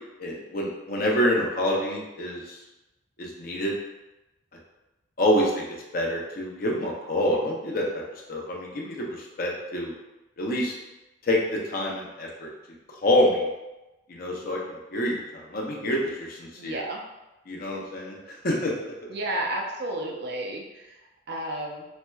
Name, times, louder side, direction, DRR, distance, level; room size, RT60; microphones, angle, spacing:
voice 1, 0.2-2.6 3.2-3.7 5.2-5.6 5.9-8.0 8.3-9.9 10.4-10.7 11.2-12.5 13.0-13.5 14.1-16.8 17.5-18.7, left 1 dB, 50° left, -2 dB, 0.6 m, -27 dB
voice 2, 16.6-17.0 19.1-21.9, right 1 dB, 55° right, 0 dB, 0.5 m, -32 dB
4.2 x 2.1 x 2.3 m, 1.0 s
head